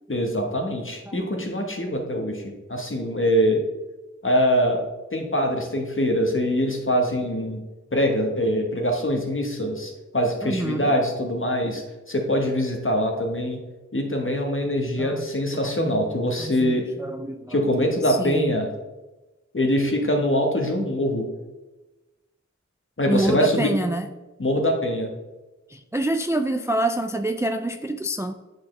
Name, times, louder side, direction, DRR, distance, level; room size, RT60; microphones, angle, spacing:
voice 1, 0.1-3.6 4.2-4.8 5.1-7.6 7.9-11.8 12.1-13.6 13.9-16.9 17.5-18.7 19.5-21.3 23.0-23.7 24.4-25.1, equal, 45° left, 2 dB, 1.3 m, -23 dB
voice 2, 10.4-10.9 15.0-16.0 16.4-17.6 18.1-18.6 23.1-24.1 25.7-28.3, right 1 dB, 10° right, 7 dB, 0.3 m, -27 dB
8.5 x 4.2 x 3.2 m, 1.1 s
wide cardioid pair, 50°, 29 cm